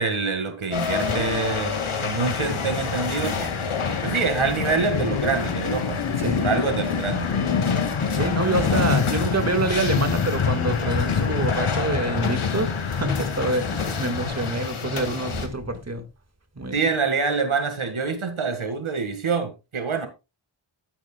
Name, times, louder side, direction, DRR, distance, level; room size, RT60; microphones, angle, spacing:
voice 1, 0.0-1.7 2.0-3.6 4.0-7.7 16.7-20.1, right 4 dB, 75° right, 1.9 m, -26 dB
sound 1, 0.7-15.5, left 5 dB, 80° left, 2.0 m, -30 dB
sound 2, 2.3-14.7, left 6 dB, 65° left, 1.0 m, -27 dB
voice 2, 8.1-16.0 16.6-16.7, right 2 dB, 30° right, 1.9 m, -26 dB
12.5 x 11.0 x 2.3 m
wide cardioid pair, 90°, 49 cm